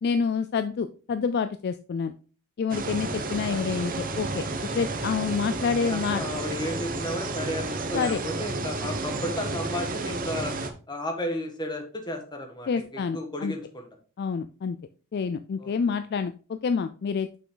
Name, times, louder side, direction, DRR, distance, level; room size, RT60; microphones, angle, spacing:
voice 1, 0.0-2.1 2.6-4.4 4.7-6.2 7.9-8.2 12.7-13.5 14.2-14.8 15.1-17.3, left 5 dB, 45° left, 10 dB, 0.3 m, -28 dB
sound 1, 2.7-10.7, right 3 dB, 40° right, 0.9 m, -31 dB
voice 2, 5.8-10.5 10.9-13.9 15.6-16.0, left 1 dB, 20° left, 3 dB, 1.3 m, -33 dB
6.2 x 5.7 x 3.8 m, 0.38 s
head